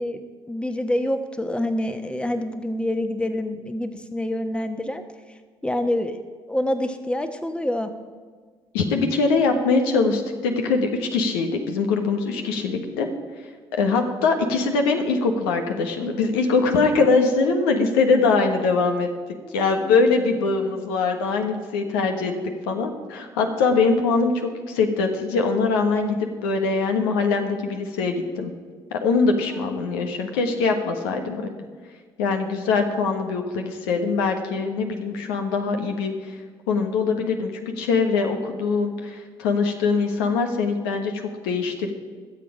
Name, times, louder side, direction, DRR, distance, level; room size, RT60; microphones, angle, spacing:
voice 1, 0.0-5.0 5.6-6.2 6.5-7.9 19.4-19.9 29.5-29.7, left 1 dB, 10° left, 8 dB, 1.2 m, -27 dB
voice 2, 8.7-13.1 13.7-19.1 19.5-22.3 22.7-28.5 28.9-31.4 32.2-36.1 36.7-41.9, left 4 dB, 75° left, 4 dB, 1.4 m, -22 dB
21.5 x 7.5 x 5.0 m, 1.6 s
hypercardioid pair, 55°, 12 cm